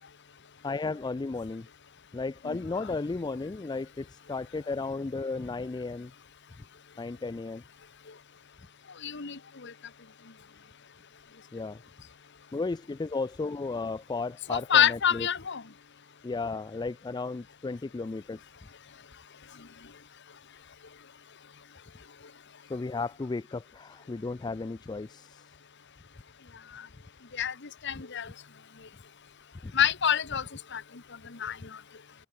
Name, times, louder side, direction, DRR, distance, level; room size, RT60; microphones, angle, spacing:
voice 1, 0.6-1.7 2.1-6.1 7.0-7.6 11.5-11.8 12.5-15.3 16.2-18.4 22.7-25.4 29.6-29.7, left 3 dB, 20° left, 0.3 m, -34 dB
voice 2, 9.0-9.7 14.5-15.6 26.7-26.8 27.3-27.5 27.8-28.3 29.7-30.5 30.7-30.8 31.2-31.8, left 8 dB, 55° left, 1.3 m, -27 dB
head